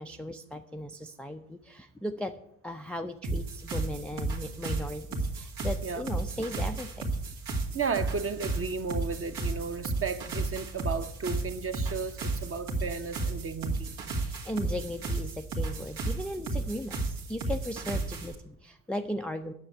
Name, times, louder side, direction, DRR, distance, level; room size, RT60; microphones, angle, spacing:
voice 1, 0.0-2.4 2.6-7.1 14.1-19.5, left 1 dB, ahead, 0.5 m, -37 dB
sound 1, 3.2-18.3, right 2 dB, 70° right, 2.2 m, -33 dB
voice 2, 7.7-14.0, right 5 dB, 25° right, 1.0 m, -34 dB
9.7 x 7.2 x 9.0 m
figure-of-eight pair, 50°, 50 cm